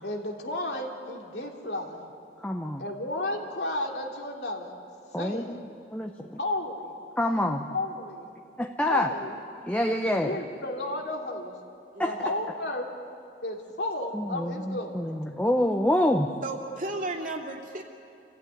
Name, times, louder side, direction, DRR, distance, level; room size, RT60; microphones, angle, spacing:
voice 1, 0.0-2.0 2.8-4.8 5.2-5.6 6.4-6.9 7.7-8.3 8.8-9.4 10.2-11.5 12.0-12.9 13.4-15.1, left 1 dB, 75° left, 1 dB, 2.7 m, -33 dB
voice 2, 2.4-2.8 5.1-5.6 5.9-6.4 7.2-7.7 8.6-9.1 9.6-10.4 12.0-12.1 14.1-16.3, left 1 dB, 10° left, 3 dB, 0.8 m, -26 dB
voice 3, 11.9-12.3 16.4-17.8, right 2 dB, 50° right, 1 dB, 2.5 m, -34 dB
27.0 x 15.5 x 9.5 m, 2.6 s
head